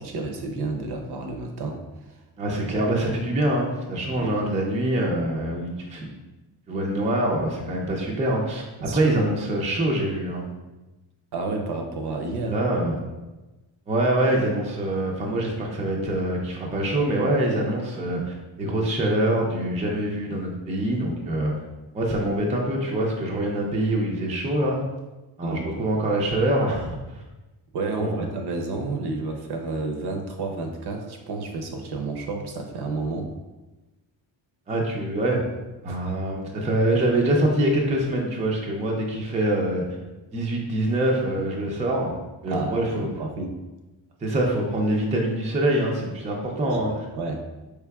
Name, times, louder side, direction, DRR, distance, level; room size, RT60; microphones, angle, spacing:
voice 1, 0.0-1.8 4.1-4.3 8.8-9.1 11.3-12.6 25.4-25.8 27.7-33.3 35.9-36.2 42.5-43.5 46.6-47.4, right 3 dB, 55° right, 3 dB, 0.6 m, -31 dB
voice 2, 2.4-6.1 6.7-8.6 8.9-10.4 12.5-13.0 13.9-21.5 21.9-24.8 25.4-27.0 28.0-28.2 34.7-35.4 35.8-39.8 40.3-42.1 42.4-43.1 44.2-46.9, right 1 dB, 15° right, -1 dB, 0.4 m, -24 dB
4.6 x 3.3 x 2.2 m, 1.1 s
wide cardioid pair, 155°, 47 cm